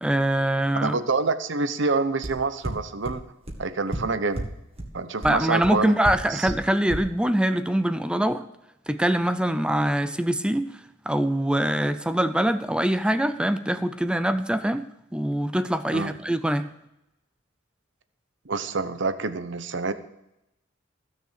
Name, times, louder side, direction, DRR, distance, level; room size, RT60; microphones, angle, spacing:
voice 1, 0.0-1.0 5.2-8.4 8.9-10.7 11.1-14.8 15.1-16.7, right 1 dB, 5° right, 11 dB, 0.5 m, -23 dB
voice 2, 0.8-3.2 3.6-4.5 4.9-6.0 6.3-6.5 15.9-16.1 18.5-19.9, right 4 dB, 65° right, 12 dB, 0.8 m, -27 dB
sound 1, 2.2-2.3 2.6-2.7 3.0-3.1 3.5-3.6 3.9-4.0 4.3-4.4 4.8-4.9 5.2-5.3 5.6-5.7 6.0-6.1 6.5-6.6 6.9-7.0, right 1 dB, 30° right, 1.9 m, -29 dB
15.0 x 6.7 x 6.6 m, 0.87 s
head